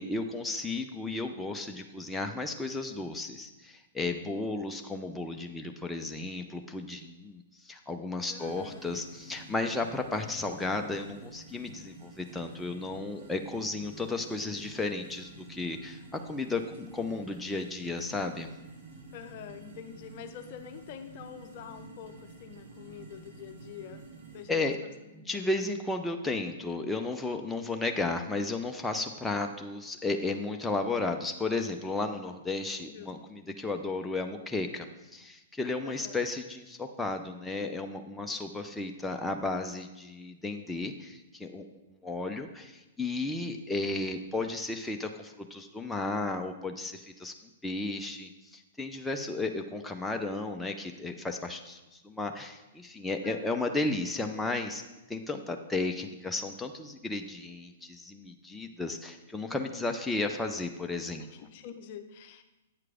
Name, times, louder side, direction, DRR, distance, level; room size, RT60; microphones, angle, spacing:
voice 1, 0.0-18.5 24.5-24.8 25.1-34.9 35.1-41.7 42.0-47.3 47.6-61.2, left 3 dB, 5° left, 3 dB, 0.5 m, -34 dB
voice 2, 8.3-8.9 19.1-25.6 32.9-33.1 35.8-36.2 53.2-53.8 61.3-62.4, left 8 dB, 50° left, 8 dB, 0.6 m, -46 dB
sound 1, 8.4-24.5, right 3 dB, 60° right, 2.2 m, -50 dB
8.6 x 4.7 x 4.9 m, 1.0 s
hypercardioid pair, 115°, 0 cm